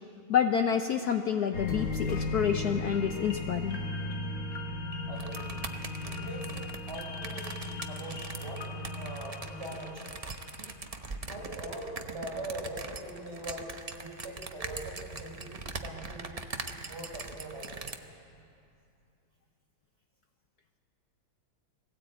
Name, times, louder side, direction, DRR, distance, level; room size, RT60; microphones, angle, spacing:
voice 1, 0.3-3.8, left 8 dB, 65° left, 6 dB, 1.0 m, -28 dB
sound 1, 1.5-10.9 11.3-11.4, left 2 dB, 40° left, 1.6 m, -36 dB
voice 2, 5.1-5.5 6.0-8.6 8.9-10.2 11.3-15.5 15.8-16.4 16.8-17.9, right 1 dB, 30° right, -2 dB, 6.0 m, -42 dB
sound 2, 5.2-18.0, right 3 dB, 65° right, 0.3 m, -41 dB
20.5 x 17.0 x 8.6 m, 2.5 s
omnidirectional pair, 2.3 m